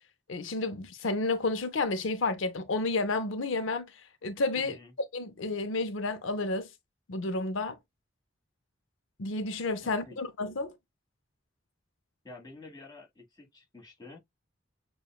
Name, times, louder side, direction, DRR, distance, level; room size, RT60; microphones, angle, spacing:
voice 1, 0.3-4.8 5.1-6.7 7.1-7.8 9.2-10.8, left 3 dB, 85° left, 0.6 m, -31 dB
voice 2, 4.5-4.9 9.8-10.2 12.2-14.2, left 3 dB, 20° left, 1.4 m, -49 dB
6.7 x 2.3 x 2.2 m
head